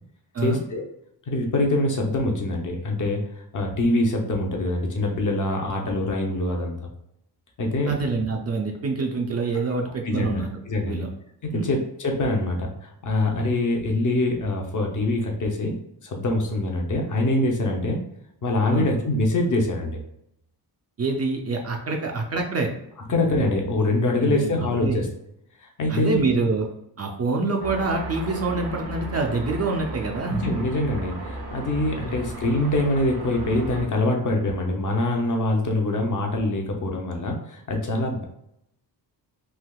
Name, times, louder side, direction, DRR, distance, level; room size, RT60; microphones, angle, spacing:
voice 1, 0.4-0.8 1.3-6.9 7.6-7.9 10.0-10.4 10.7-11.1 11.4-15.7 16.0-18.0 18.4-20.0 23.1-25.1 25.6-26.2 30.4-38.2, left 2 dB, 45° left, 1 dB, 0.6 m, -24 dB
voice 2, 7.9-11.1 11.5-11.7 18.7-18.9 21.0-22.7 24.2-25.0 25.9-26.7 27.0-30.4, right 3 dB, 40° right, 1 dB, 0.4 m, -26 dB
sound 1, 27.6-33.9, right 1 dB, 85° right, 1.0 m, -35 dB
3.4 x 2.8 x 2.2 m, 0.79 s
wide cardioid pair, 135°, 42 cm